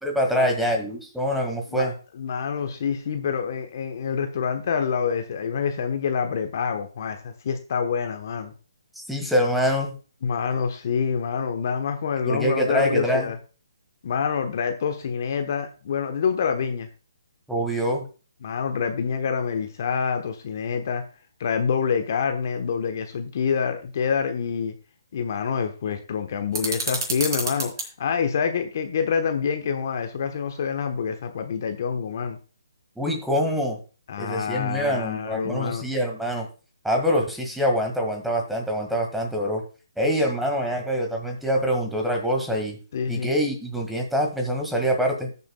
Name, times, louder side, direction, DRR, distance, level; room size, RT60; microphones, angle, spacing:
voice 1, 0.0-1.9 8.9-9.9 12.2-13.3 17.5-18.0 33.0-33.8 34.2-36.5 36.8-39.6 40.0-42.8 43.1-45.3, equal, ahead, 2 dB, 1.7 m, -25 dB
voice 2, 1.7-8.5 10.2-13.4 14.0-16.9 18.4-21.0 21.4-24.7 25.1-32.4 34.1-35.8 42.9-43.3, left 6 dB, 50° left, 7 dB, 1.0 m, -27 dB
sound 1, 26.5-27.9, right 3 dB, 55° right, 3.7 m, -29 dB
19.0 x 6.8 x 2.2 m, 0.35 s
hypercardioid pair, 145°, 2 cm